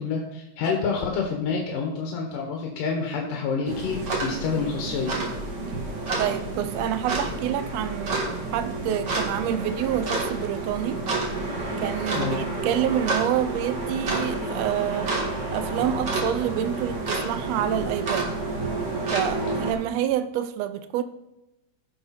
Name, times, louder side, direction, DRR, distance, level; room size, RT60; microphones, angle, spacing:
voice 1, 0.0-5.2 12.1-12.5, left 5 dB, 90° left, 2.9 m, -28 dB
sound 1, 3.7-19.7, right 2 dB, 35° right, 2.5 m, -29 dB
voice 2, 6.2-8.2 8.5-11.0 11.8-15.1 15.5-18.3 19.1-21.0, right 10 dB, 90° right, 1.4 m, -27 dB
16.0 x 6.8 x 4.2 m
omnidirectional pair, 3.7 m